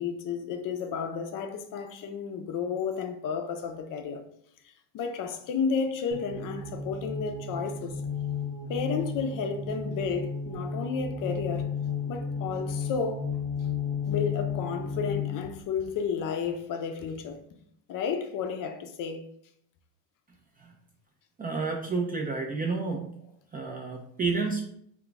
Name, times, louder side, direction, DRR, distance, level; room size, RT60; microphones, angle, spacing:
voice 1, 0.0-4.2 4.6-8.0 8.7-11.7 12.1-13.3 14.1-17.4 17.9-19.3, left 6 dB, 40° left, 0.5 m, -32 dB
sound 1, 6.1-15.5, left 5 dB, 15° left, 0.8 m, -33 dB
voice 2, 21.4-23.1 23.5-24.6, right 4 dB, 20° right, 0.4 m, -30 dB
2.4 x 2.3 x 3.8 m
supercardioid pair, 85°, 49 cm